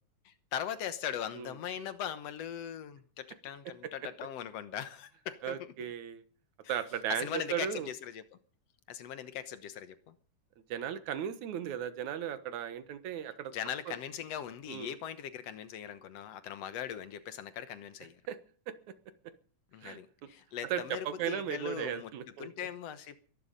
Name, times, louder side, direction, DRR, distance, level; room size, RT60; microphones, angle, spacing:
voice 1, 0.3-5.7 6.6-6.8 7.1-8.3 8.9-10.2 13.5-18.2 19.7-22.1 22.4-23.2, left 9 dB, 65° left, 12 dB, 2.1 m, -40 dB
voice 2, 5.4-6.2 6.7-7.9 10.7-13.5 13.9-14.0 14.7-14.9 18.3-18.4 19.8-20.0 20.7-22.5, right 9 dB, 80° right, 11 dB, 2.6 m, -36 dB
22.0 x 11.5 x 5.2 m, 0.43 s
omnidirectional pair, 3.3 m